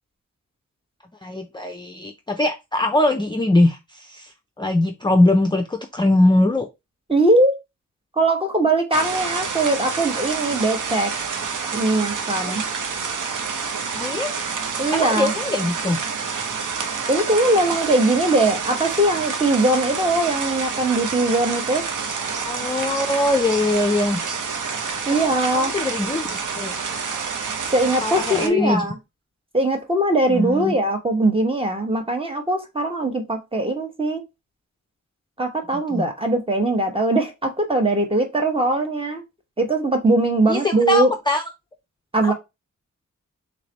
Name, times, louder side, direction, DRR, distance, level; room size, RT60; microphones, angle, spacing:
voice 1, 1.2-6.7 12.5-12.7 13.9-14.4 14.9-16.0 22.4-24.2 25.1-26.7 28.0-28.9 30.3-30.7 35.9-36.1 40.5-41.4 42.2-42.3, left 2 dB, 15° left, 0.4 m, -22 dB
voice 2, 7.1-7.6 8.2-11.1 11.7-12.6 14.8-15.3 17.1-21.8 25.1-25.7 27.7-28.9 29.5-34.2 35.4-39.2 39.6-41.1 42.1-42.3, right 2 dB, 20° right, 0.9 m, -20 dB
sound 1, 8.9-28.5, right 5 dB, 85° right, 0.7 m, -28 dB
3.4 x 3.2 x 3.8 m
wide cardioid pair, 160°, 30 cm